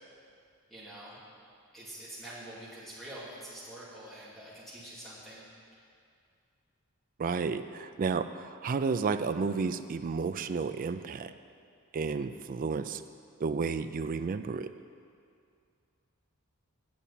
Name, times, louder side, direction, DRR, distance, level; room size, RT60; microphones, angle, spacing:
voice 1, 0.7-1.2 1.7-5.4, right 1 dB, ahead, -9 dB, 2.8 m, -46 dB
voice 2, 7.2-11.3 11.9-13.0 13.4-14.7, right 5 dB, 40° right, 11 dB, 0.3 m, -32 dB
8.6 x 6.9 x 8.4 m, 2.3 s
head